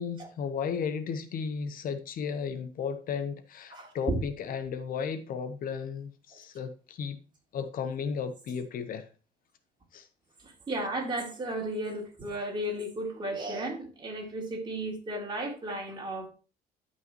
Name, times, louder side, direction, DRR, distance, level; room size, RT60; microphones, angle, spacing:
voice 1, 0.0-7.2 7.5-9.0 9.9-10.1, left 6 dB, 55° left, 0.8 m, -34 dB
voice 2, 3.7-4.2 6.3-6.4 10.4-16.3, right 1 dB, 25° right, 3.3 m, -34 dB
12.5 x 5.5 x 3.0 m
cardioid pair, 110°, 17 cm